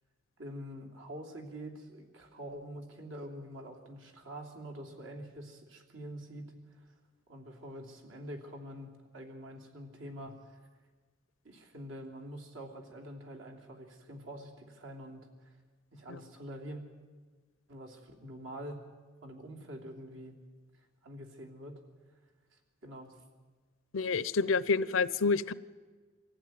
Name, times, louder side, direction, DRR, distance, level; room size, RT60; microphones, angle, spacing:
voice 1, 0.4-6.4 6.7-6.8 7.3-10.6 11.4-15.5 15.9-16.8 17.7-18.8 19.2-20.4 21.0-21.7 22.8-23.1, equal, 70° right, 1 dB, 3.2 m, -45 dB
voice 2, 23.9-25.5, left 4 dB, 75° left, 18 dB, 0.6 m, -28 dB
24.0 x 15.0 x 9.4 m, 1.4 s
head